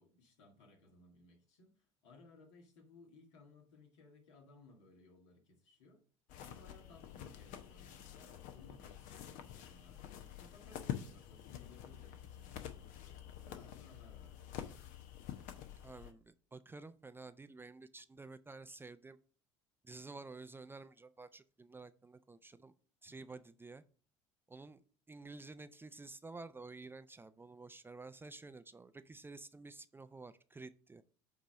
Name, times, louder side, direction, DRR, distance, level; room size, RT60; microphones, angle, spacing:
voice 1, 0.0-6.0 6.4-14.6 23.0-23.4, left 2 dB, 75° left, 1.8 m, -62 dB
sound 1, 6.3-16.1, left 10 dB, 60° left, 0.9 m, -48 dB
voice 2, 15.8-19.2 19.8-22.7 23.0-23.8 24.5-24.8 25.1-31.0, right 3 dB, 15° right, 0.5 m, -51 dB
8.2 x 3.0 x 6.2 m
hypercardioid pair, 65°, 15 cm